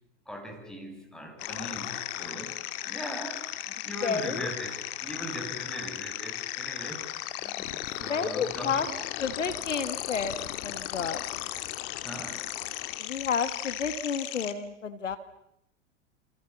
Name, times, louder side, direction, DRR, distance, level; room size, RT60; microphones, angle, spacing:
voice 1, 0.3-7.1 7.4-8.9 12.0-12.6, equal, ahead, 6.6 m, -40 dB
sound 1, 1.4-14.5, left 15 dB, 50° left, 2.3 m, -36 dB
voice 2, 4.0-4.5 8.0-8.9 9.2-11.2 13.0-15.2, left 6 dB, 80° left, 1.7 m, -31 dB
28.5 x 28.0 x 7.1 m
figure-of-eight pair, 90°, 36 cm